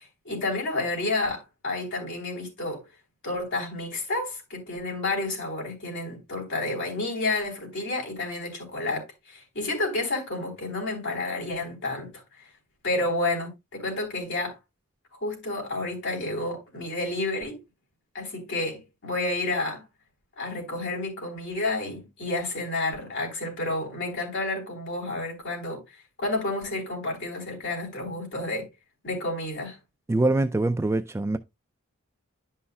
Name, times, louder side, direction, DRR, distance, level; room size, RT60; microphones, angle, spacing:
voice 1, 0.0-2.8 3.2-12.1 12.8-14.6 15.2-17.6 18.1-19.8 20.4-25.8 26.2-28.7 29.0-29.8, left 2 dB, 60° left, 3.9 m, -30 dB
voice 2, 30.1-31.4, right 2 dB, 15° right, 0.3 m, -24 dB
11.0 x 5.6 x 2.3 m
head